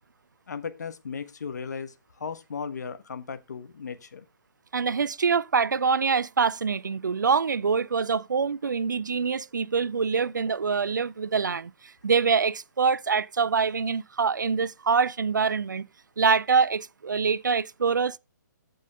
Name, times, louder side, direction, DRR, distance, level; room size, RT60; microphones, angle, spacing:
voice 1, 0.5-1.9 2.2-4.3, left 6 dB, 60° left, 1.2 m, -36 dB
voice 2, 4.7-11.7 12.0-15.9 16.2-18.2, right 5 dB, 70° right, 0.5 m, -25 dB
14.5 x 5.5 x 3.4 m
figure-of-eight pair, 135°, 10 cm